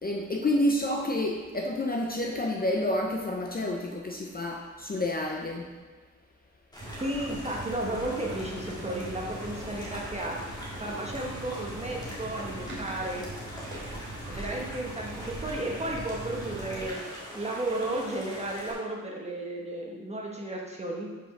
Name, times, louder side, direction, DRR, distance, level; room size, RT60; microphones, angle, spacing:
voice 1, 0.0-5.7, left 1 dB, 30° left, 0 dB, 0.6 m, -29 dB
sound 1, 6.7-18.7, equal, 15° left, 1.7 m, -43 dB
sound 2, 6.8-16.9, right 1 dB, 35° right, 2.4 m, -41 dB
voice 2, 7.0-10.4 10.8-13.3 14.3-21.2, right 1 dB, 20° right, -2 dB, 1.2 m, -33 dB
5.4 x 5.2 x 6.0 m, 1.4 s
wide cardioid pair, 160°, 32 cm